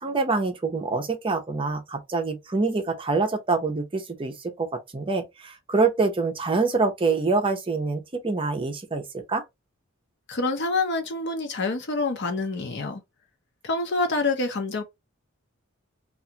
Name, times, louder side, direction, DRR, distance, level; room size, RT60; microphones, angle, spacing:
voice 1, 0.0-9.4, right 3 dB, 25° right, 0.6 m, -26 dB
voice 2, 10.3-13.0 13.6-14.8, left 3 dB, 60° left, 0.8 m, -26 dB
2.4 x 2.4 x 2.7 m
head